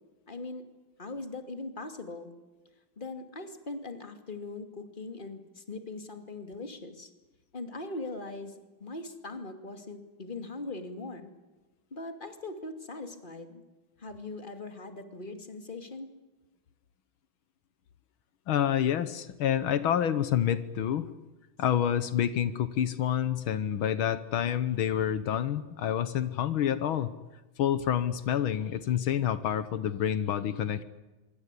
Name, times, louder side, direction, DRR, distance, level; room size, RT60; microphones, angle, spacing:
voice 1, 0.3-0.6 1.0-2.3 3.0-7.1 7.5-11.3 11.9-13.6 14.0-16.1, left 2 dB, 25° left, 7 dB, 2.7 m, -40 dB
voice 2, 18.5-21.1 21.6-27.1 27.6-30.8, left 10 dB, 80° left, 13 dB, 1.9 m, -28 dB
26.0 x 24.0 x 8.4 m, 1.1 s
omnidirectional pair, 2.2 m